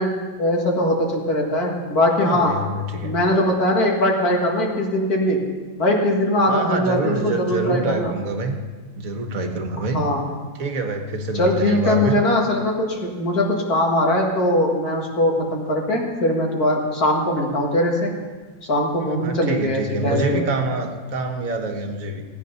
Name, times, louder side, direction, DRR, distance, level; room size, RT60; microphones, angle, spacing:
voice 1, 0.0-2.6 3.0-5.5 5.8-8.1 9.9-10.2 11.3-18.2 18.7-20.5, left 1 dB, 65° left, 0 dB, 2.4 m, -21 dB
voice 2, 2.2-3.2 6.5-8.5 9.0-10.0 10.6-12.2 19.0-22.2, right 2 dB, 60° right, 5 dB, 1.7 m, -26 dB
16.5 x 9.4 x 5.6 m, 1.4 s
omnidirectional pair, 1.7 m